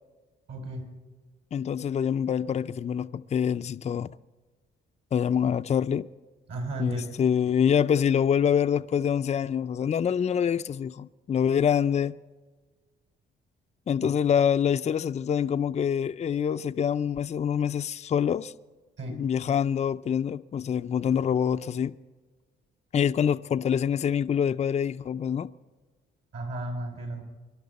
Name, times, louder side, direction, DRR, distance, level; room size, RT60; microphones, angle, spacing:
voice 1, 0.5-0.8 6.5-7.0 19.0-19.2 26.3-27.2, right 1 dB, 70° right, 5.7 m, -34 dB
voice 2, 1.5-4.1 5.1-6.1 6.8-12.2 13.9-18.5 19.1-21.9 22.9-25.5, left 8 dB, 35° left, 0.5 m, -25 dB
24.5 x 11.5 x 4.1 m
cardioid pair, 90°, 20 cm